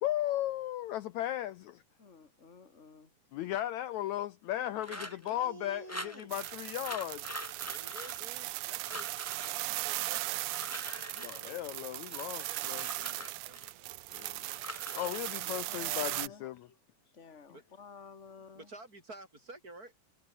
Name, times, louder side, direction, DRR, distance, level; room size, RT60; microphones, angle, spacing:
voice 1, 0.0-1.8 3.3-5.0 5.3-7.2 11.2-12.9 14.1-14.4 14.9-16.7, left 13 dB, 75° left, 1.8 m, -36 dB
voice 2, 2.0-3.1 15.0-15.2 15.7-16.8 17.1-18.7, left 5 dB, 20° left, 2.8 m, -52 dB
voice 3, 4.5-6.4 7.7-9.1 9.4-10.4 11.3-11.6 12.1-14.4 17.5-17.6 18.5-19.9, right 2 dB, 25° right, 8.0 m, -52 dB
sound 1, 4.8-5.4 5.9-6.5 6.8-8.6 8.9-9.5 10.3-11.5 12.1-13.7 14.1-15.3, equal, 5° left, 5.6 m, -45 dB
sound 2, 6.3-16.3, right 19 dB, 80° right, 2.0 m, -38 dB
omnidirectional pair, 3.9 m